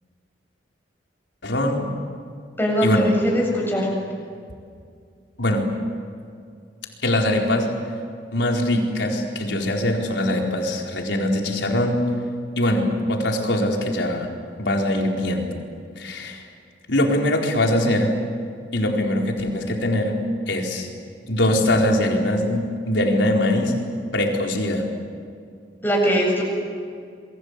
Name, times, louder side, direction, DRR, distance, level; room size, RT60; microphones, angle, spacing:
voice 1, 1.4-1.9 2.8-3.1 5.4-5.6 7.0-7.7 8.3-12.0 12.6-14.3 14.6-15.6 16.0-16.4 16.9-18.1 18.7-20.2 20.5-20.9 21.3-23.7 24.1-24.9, left 1 dB, 85° left, 1 dB, 4.4 m, -22 dB
voice 2, 2.6-3.9 25.8-26.4, equal, 10° left, -2 dB, 7.6 m, -21 dB
28.5 x 22.5 x 8.4 m, 2.2 s
head